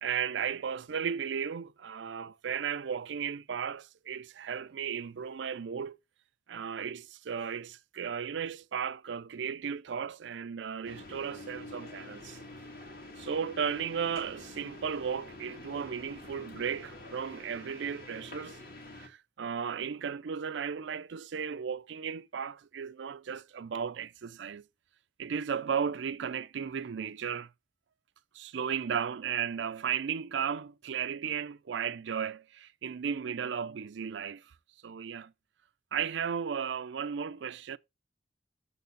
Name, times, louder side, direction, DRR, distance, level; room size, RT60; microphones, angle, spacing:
voice 1, 0.0-6.0 6.5-12.4 13.2-18.6 19.0-24.6 25.2-27.5 28.3-34.5 34.8-35.3 35.9-37.8, right 7 dB, 70° right, 0.4 m, -35 dB
sound 1, 10.8-19.1, left 2 dB, 50° left, 1.9 m, -47 dB
7.1 x 4.2 x 5.2 m
head